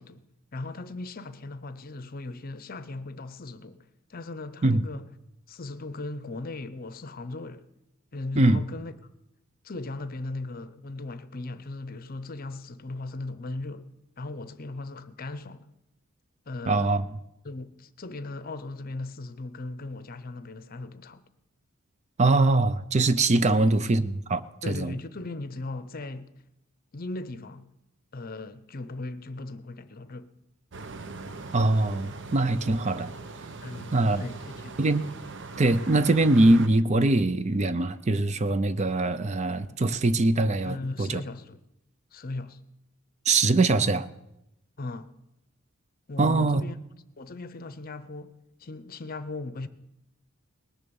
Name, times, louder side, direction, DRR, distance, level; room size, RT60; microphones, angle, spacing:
voice 1, 0.0-5.1 5.5-7.7 8.1-8.9 9.6-13.9 14.2-15.7 16.5-17.0 17.4-21.2 23.5-23.7 24.6-26.3 26.9-27.7 28.1-30.3 33.6-34.7 40.6-41.6 42.1-42.6 44.8-45.1 46.1-46.7 47.2-48.3 48.6-49.7, left 2 dB, 40° left, 0.7 m, -38 dB
voice 2, 16.7-17.1 22.2-24.9 31.5-33.1 33.9-34.2 34.8-35.0 35.6-41.2 43.3-44.1 46.2-46.6, right 2 dB, 30° right, 0.5 m, -22 dB
sound 1, 30.7-36.7, right 3 dB, 55° right, 0.9 m, -40 dB
19.5 x 6.9 x 7.0 m
head